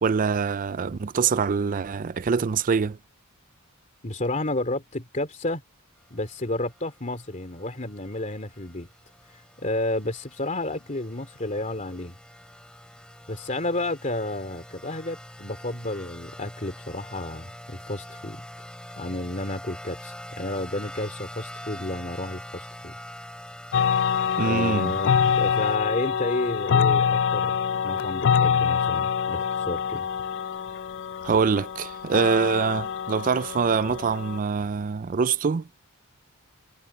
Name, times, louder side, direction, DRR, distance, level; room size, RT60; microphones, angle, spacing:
voice 1, 0.0-3.0 24.4-24.9 31.2-35.7, right 5 dB, 40° right, 0.4 m, -24 dB
voice 2, 4.0-5.6 6.1-8.9 9.3-12.1 13.3-18.4 18.9-23.0 24.4-27.6 27.8-30.1, left 2 dB, 35° left, 2.9 m, -31 dB
Random Siren Ambience, 6.0-25.8, equal, 5° left, 5.1 m, -44 dB
sound 1, 23.7-34.4, left 7 dB, 55° left, 0.4 m, -25 dB
head